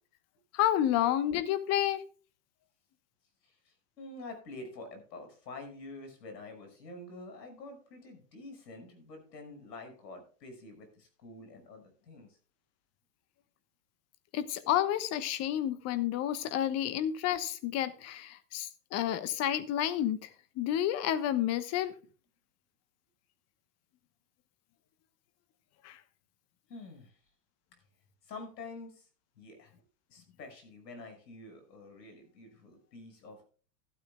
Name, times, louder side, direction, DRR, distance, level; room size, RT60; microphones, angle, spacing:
voice 1, 0.5-2.0 14.3-20.3 20.6-21.9 25.8-26.0, left 11 dB, 30° left, 13 dB, 1.1 m, -30 dB
voice 2, 3.4-12.4 26.7-27.1 28.2-29.1 29.4-29.7 30.1-33.5, left 2 dB, 80° left, 7 dB, 5.8 m, -47 dB
14.5 x 12.5 x 2.3 m, 0.39 s
hypercardioid pair, 130°, 49 cm